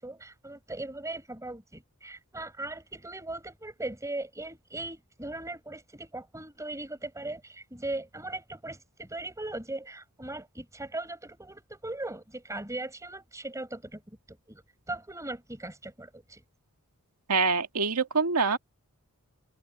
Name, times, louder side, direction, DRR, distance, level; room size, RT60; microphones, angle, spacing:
voice 1, 0.0-14.6 14.9-16.4, right 2 dB, 15° right, 6.1 m, -39 dB
voice 2, 17.3-18.6, right 4 dB, 90° right, 1.9 m, -25 dB
open air
head